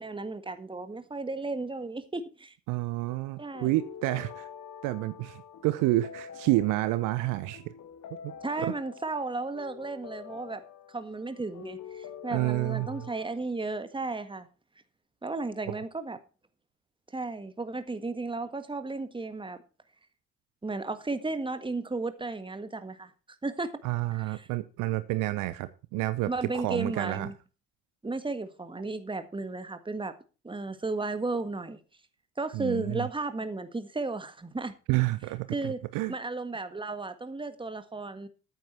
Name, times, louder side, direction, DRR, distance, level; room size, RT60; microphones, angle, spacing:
voice 1, 0.0-2.5 3.4-3.7 8.4-10.6 10.9-14.5 15.2-16.2 17.1-19.6 20.6-23.1 23.4-23.7 24.1-24.5 26.3-27.3 28.0-30.1 30.4-31.8 32.4-34.7 35.5-35.8 36.1-38.3, right 3 dB, 15° right, 1.7 m, -34 dB
voice 2, 2.7-4.5 4.8-7.6 8.2-8.7 12.3-13.1 15.7-15.8 23.8-27.3 32.5-33.1 34.9-36.1, right 18 dB, 55° right, 0.8 m, -29 dB
sound 1, 3.0-13.3, left 8 dB, 50° left, 1.6 m, -46 dB
13.5 x 9.1 x 4.5 m
figure-of-eight pair, 50°, 38 cm